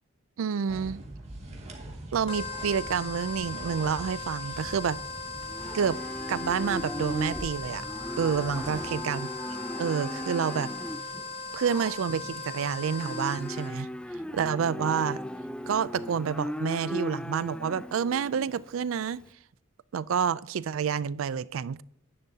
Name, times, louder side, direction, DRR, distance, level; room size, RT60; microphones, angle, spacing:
voice 1, 0.4-1.0 2.1-5.0 5.7-6.0 6.3-7.8 8.2-9.3 9.8-10.7 11.5-13.9 14.3-15.2 15.7-19.2 19.9-21.8, right 7 dB, 75° right, 0.4 m, -28 dB
sound 1, 0.7-9.0, right 1 dB, 30° right, 2.0 m, -43 dB
sound 2, 2.3-13.7, left 4 dB, 25° left, 1.7 m, -38 dB
Livestock farm animals working animals, 4.5-19.3, left 1 dB, 5° left, 0.3 m, -38 dB
10.5 x 10.0 x 2.8 m
head